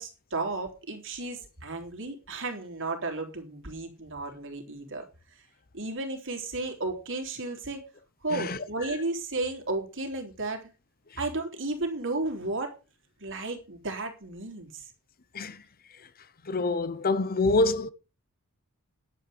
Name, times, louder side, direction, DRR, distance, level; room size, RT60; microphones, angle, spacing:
voice 1, 0.0-5.0 5.7-7.8 8.2-10.6 11.2-12.7 13.2-14.8, right 2 dB, 60° right, 3.7 m, -33 dB
voice 2, 16.5-17.9, left 3 dB, 40° left, 0.9 m, -26 dB
11.0 x 9.0 x 5.2 m
head